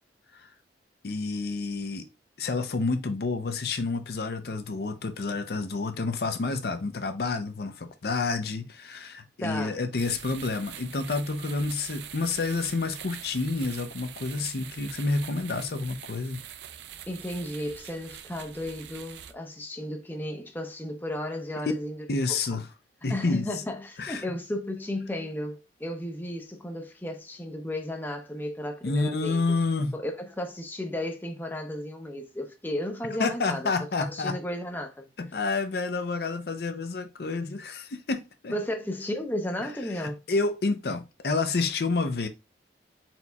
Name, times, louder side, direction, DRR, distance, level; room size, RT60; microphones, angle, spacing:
voice 1, 1.0-2.1 2.4-16.4 22.1-22.7 23.0-23.5 24.0-24.2 28.8-29.9 33.2-34.4 35.2-38.5 39.9-42.3, left 3 dB, 60° left, 0.5 m, -29 dB
voice 2, 9.4-9.8 17.1-22.4 23.1-29.4 29.9-35.1 38.5-40.2, left 1 dB, 10° left, 0.6 m, -34 dB
sound 1, 10.0-19.3, right 10 dB, 75° right, 0.4 m, -44 dB
4.3 x 4.0 x 2.3 m
head